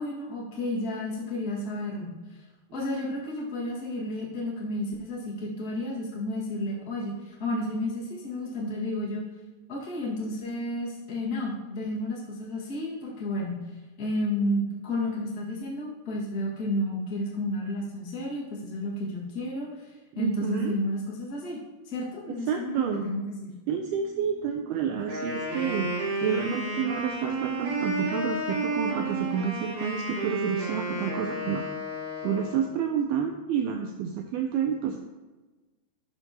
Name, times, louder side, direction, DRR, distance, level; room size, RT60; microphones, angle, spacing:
voice 1, 0.0-2.1 2.7-9.2 9.7-13.6 14.0-21.6 21.8-23.5, left 1 dB, 40° left, -5 dB, 1.3 m, -32 dB
voice 2, 20.2-20.7 22.3-23.1 23.7-25.9 26.2-31.7 32.2-35.0, right 7 dB, 80° right, 3 dB, 2.3 m, -29 dB
Wind instrument woodwind instrument, 25.0-32.7, right 2 dB, 65° right, 4.0 m, -31 dB
11.5 x 6.5 x 2.9 m, 1.2 s
omnidirectional pair, 4.9 m